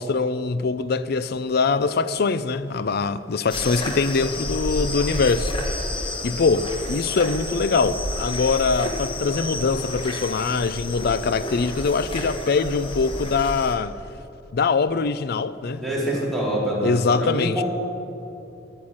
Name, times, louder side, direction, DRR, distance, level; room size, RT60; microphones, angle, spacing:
voice 1, 0.0-5.5 6.2-13.9 14.5-16.2 16.8-17.6, left 4 dB, 60° left, 0.5 m, -23 dB
sound 1, 3.5-13.7, left 1 dB, 30° left, 1.4 m, -30 dB
voice 2, 15.8-17.6, right 1 dB, ahead, 3.4 m, -25 dB
10.0 x 9.5 x 8.7 m
head